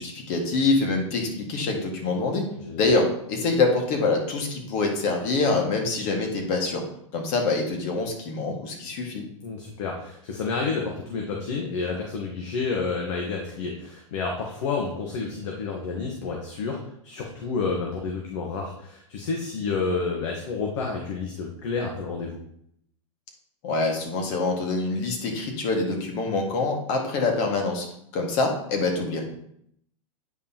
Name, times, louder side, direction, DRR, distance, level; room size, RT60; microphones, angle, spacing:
voice 1, 0.0-2.5 2.8-6.8 7.1-9.2 23.6-27.9 28.1-29.2, left 3 dB, 50° left, 3 dB, 1.9 m, -25 dB
voice 2, 9.4-22.4, left 4 dB, 65° left, 0 dB, 1.3 m, -30 dB
9.1 x 5.4 x 2.9 m, 0.70 s
hypercardioid pair, 105°, 16 cm